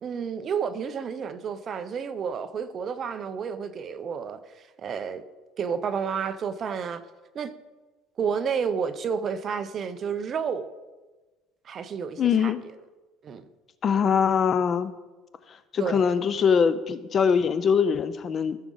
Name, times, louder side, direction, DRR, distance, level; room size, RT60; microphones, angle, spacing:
voice 1, 0.0-5.2 5.6-7.0 7.3-7.5 8.2-10.7 11.6-12.7 13.2-13.4 15.8-16.1, right 6 dB, 30° right, 0.5 m, -31 dB
voice 2, 12.2-12.6 13.8-14.9 15.7-18.6, left 6 dB, 30° left, 0.4 m, -22 dB
14.5 x 6.1 x 3.9 m
cardioid pair, 160°, 0 cm